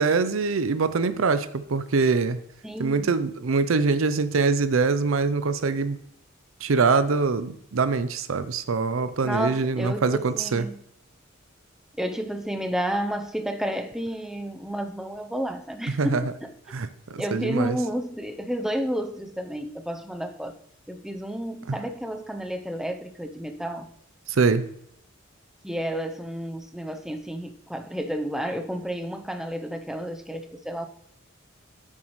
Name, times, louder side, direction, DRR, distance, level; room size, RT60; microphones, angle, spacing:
voice 1, 0.0-2.4 2.8-6.0 6.6-10.6 16.0-16.2 16.7-16.9 17.1-17.8 24.3-24.7, right 4 dB, 85° right, 13 dB, 0.6 m, -23 dB
voice 2, 2.6-3.1 9.2-10.8 12.0-16.6 17.2-20.5 20.9-23.9 25.6-30.9, equal, 5° right, 6 dB, 0.6 m, -31 dB
10.5 x 7.4 x 3.1 m, 0.72 s
head